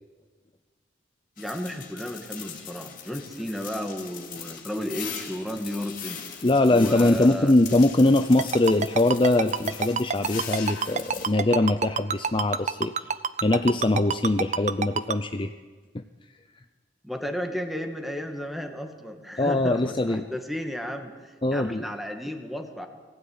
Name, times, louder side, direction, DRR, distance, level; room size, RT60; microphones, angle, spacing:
sound 1, 1.4-11.3, left 7 dB, 45° left, 3.2 m, -40 dB
voice 1, 1.4-6.3 6.7-7.5 17.0-22.9, left 1 dB, ahead, 5 dB, 2.0 m, -33 dB
voice 2, 6.4-13.1 13.4-15.5 15.9-16.0 19.4-20.2 21.4-21.8, left 2 dB, 25° left, 8 dB, 0.6 m, -22 dB
Ringtone, 8.4-15.1, right 5 dB, 40° right, 0.7 m, -26 dB
22.0 x 16.0 x 9.6 m, 1.4 s
head